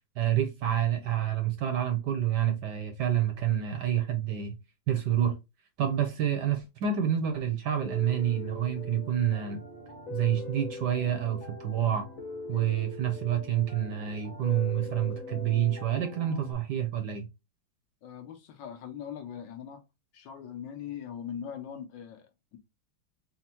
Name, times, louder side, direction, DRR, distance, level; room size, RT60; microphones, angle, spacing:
voice 1, 0.2-4.6 4.9-5.4 5.8-9.6 10.1-12.1 12.5-17.3, right 10 dB, 65° right, 1.1 m, -28 dB
Piano, 7.8-16.5, left 2 dB, 45° left, 1.5 m, -41 dB
voice 2, 18.0-19.8 20.1-22.6, left 8 dB, 70° left, 1.3 m, -41 dB
4.3 x 2.1 x 4.2 m
omnidirectional pair, 2.3 m